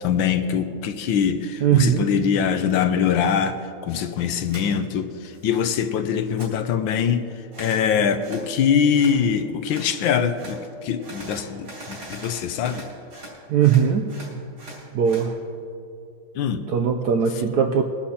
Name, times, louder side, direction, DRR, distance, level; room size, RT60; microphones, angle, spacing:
voice 1, 0.0-7.2 7.6-12.8 16.3-16.6, left 7 dB, 75° left, 9 dB, 1.3 m, -23 dB
voice 2, 1.6-2.1 13.5-14.1 14.9-15.4 16.7-17.8, right 8 dB, 80° right, 4 dB, 0.9 m, -19 dB
sound 1, 4.5-4.7 5.1-5.8 6.1-6.5 7.5-7.8 8.2-8.5 8.9-9.2 9.7-9.9 10.4-10.6 11.0-13.3 13.6-15.3, right 1 dB, 55° right, 4.3 m, -41 dB
22.0 x 11.5 x 2.8 m, 2.6 s
omnidirectional pair, 2.4 m